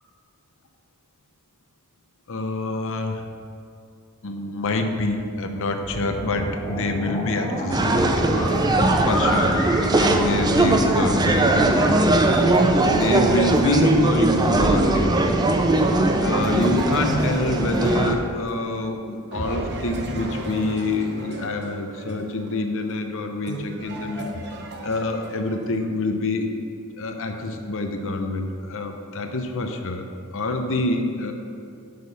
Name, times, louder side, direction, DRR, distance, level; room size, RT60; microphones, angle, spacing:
voice 1, 2.3-3.3 4.2-8.5 9.0-12.2 12.8-15.3 16.2-24.3 24.8-26.5 27.0-30.1 30.3-31.3, left 2 dB, 60° left, 5 dB, 0.7 m, -26 dB
sound 1, 5.8-11.3, equal, 10° left, 1.8 m, -30 dB
sound 2, 7.3-14.7 16.0-18.9 19.3-25.8, right 2 dB, 50° right, 0.8 m, -37 dB
sound 3, 7.7-18.1, right 2 dB, 20° right, 0.4 m, -20 dB
8.1 x 5.2 x 5.6 m, 2.4 s
head